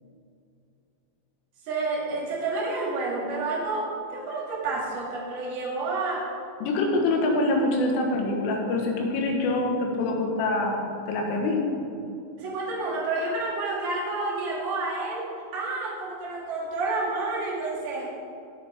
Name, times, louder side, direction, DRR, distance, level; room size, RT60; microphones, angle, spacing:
voice 1, 1.7-6.3 12.4-15.2 15.5-18.1, right 3 dB, 55° right, -5 dB, 4.0 m, -29 dB
voice 2, 6.6-10.8 11.1-11.6, left 2 dB, 80° left, 1 dB, 3.9 m, -25 dB
17.5 x 8.4 x 3.6 m, 2.5 s
omnidirectional pair, 5.7 m